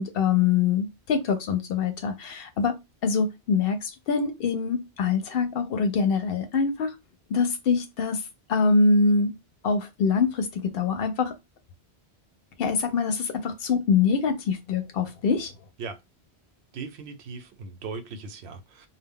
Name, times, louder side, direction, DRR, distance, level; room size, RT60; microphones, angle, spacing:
voice 1, 0.0-2.8 3.0-6.9 7.3-8.2 8.5-9.3 9.6-11.3 12.6-15.5, left 5 dB, 65° left, 0.7 m, -24 dB
voice 2, 16.7-18.9, right 4 dB, 75° right, 0.8 m, -38 dB
2.2 x 2.0 x 3.5 m
omnidirectional pair, 1.1 m